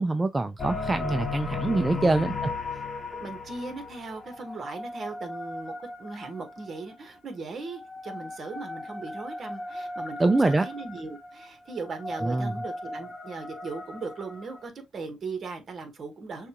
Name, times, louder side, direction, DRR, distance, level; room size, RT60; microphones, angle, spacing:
voice 1, 0.0-2.5 10.2-10.7 12.2-12.5, right 2 dB, 20° right, 0.4 m, -24 dB
sound 1, 0.6-6.8 7.6-14.7, left 3 dB, 25° left, 1.0 m, -37 dB
voice 2, 1.9-2.4 3.2-16.5, right 3 dB, 45° right, 1.3 m, -38 dB
6.4 x 2.4 x 2.9 m
cardioid pair, 90°, 0 cm